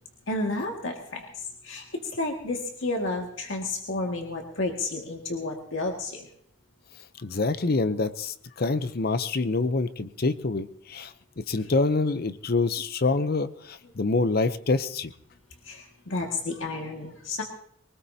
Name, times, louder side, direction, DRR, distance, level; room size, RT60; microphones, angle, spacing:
voice 1, 0.3-1.3 1.6-1.8 2.1-6.3 11.6-11.7 15.6-17.4, left 2 dB, 80° left, 1 dB, 2.0 m, -31 dB
voice 2, 7.2-15.1, left 3 dB, 50° left, 12 dB, 0.7 m, -26 dB
23.5 x 19.0 x 2.8 m, 0.67 s
head